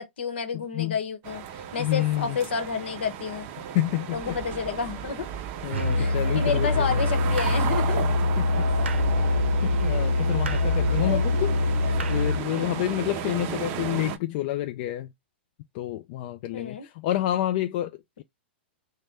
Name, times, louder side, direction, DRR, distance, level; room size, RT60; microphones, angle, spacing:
voice 1, 0.0-3.5 4.1-5.3 6.0-8.0 11.0-11.2 12.5-12.8 16.5-16.9, left 6 dB, 75° left, 0.9 m, -30 dB
voice 2, 0.5-1.0 1.8-2.4 3.7-4.4 5.6-7.0 8.0-8.1 8.5-8.7 9.6-11.6 12.1-15.1 15.7-18.2, left 15 dB, 50° left, 0.3 m, -29 dB
sound 1, 1.2-14.2, right 10 dB, 40° right, 0.5 m, -35 dB
sound 2, 4.1-12.5, right 6 dB, 20° right, 1.0 m, -39 dB
Musical instrument, 5.7-12.5, left 2 dB, 85° right, 0.5 m, -24 dB
3.0 x 2.1 x 3.4 m
hypercardioid pair, 120°, 6 cm